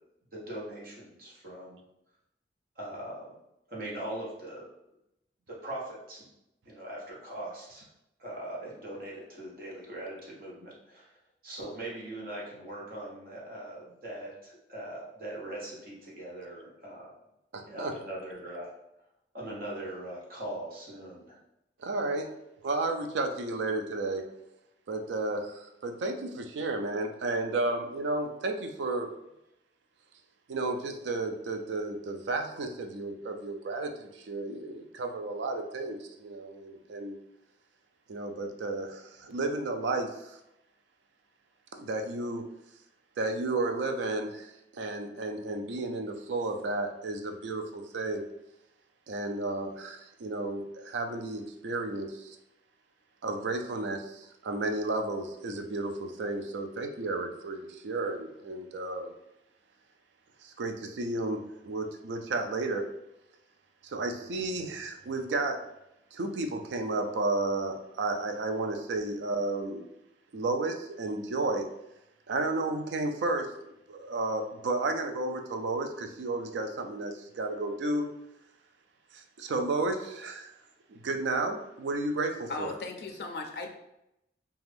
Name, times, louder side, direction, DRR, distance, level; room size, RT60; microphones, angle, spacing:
voice 1, 0.3-1.8 2.8-3.4 3.7-4.7 5.5-6.2 6.6-7.8 8.2-11.2 11.4-17.1 17.7-18.7 19.3-21.4, right 1 dB, 50° right, -5 dB, 0.9 m, -41 dB
voice 2, 17.5-17.9 21.8-22.3 22.6-24.2 24.9-29.1 30.5-37.2 38.1-40.4 41.8-42.5 43.2-48.2 49.1-52.4 53.2-59.1 60.4-62.8 63.8-65.6 66.1-69.8 70.3-71.7 72.3-73.5 73.9-78.1 79.1-80.5 80.9-82.7, right 2 dB, 80° right, 5 dB, 0.4 m, -32 dB
voice 3, 82.5-83.7, left 3 dB, 60° left, 3 dB, 0.4 m, -37 dB
2.5 x 2.3 x 3.3 m, 0.84 s
head